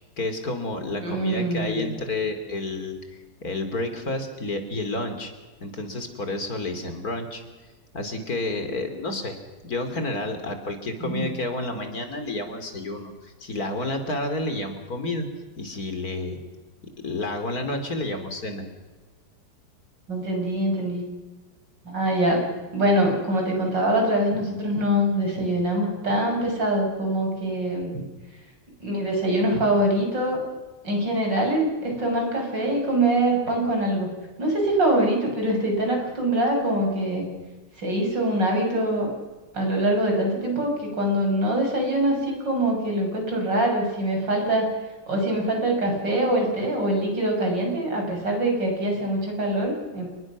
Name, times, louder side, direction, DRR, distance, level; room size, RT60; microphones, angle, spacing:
voice 1, 0.2-3.0 3.4-5.3 5.6-7.4 7.9-9.4 9.6-15.3 15.6-16.4 17.0-18.7, left 2 dB, 55° left, 7 dB, 3.5 m, -30 dB
voice 2, 1.0-1.9 11.0-11.3 20.1-21.0 21.9-22.4 22.7-27.9 28.8-30.4 30.8-34.1 34.4-37.3 37.8-39.1 39.5-44.7 45.1-50.1, right 1 dB, 80° right, 1 dB, 7.3 m, -24 dB
29.5 x 21.0 x 6.3 m, 1.3 s
omnidirectional pair, 1.9 m